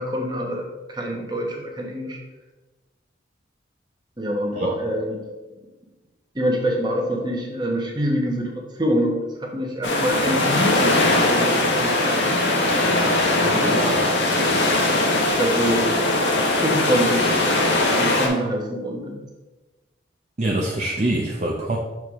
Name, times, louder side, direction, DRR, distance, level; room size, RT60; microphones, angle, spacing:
voice 1, 0.0-2.2 4.2-5.2 6.3-12.3 13.3-13.8 15.1-15.9 16.6-17.4 18.0-19.2, equal, 25° right, 0 dB, 1.0 m, -25 dB
sound 1, 9.8-18.3, left 2 dB, 80° left, 1.2 m, -20 dB
voice 2, 20.4-21.8, right 1 dB, 40° right, -2 dB, 0.6 m, -24 dB
6.8 x 4.6 x 3.6 m, 1.2 s
head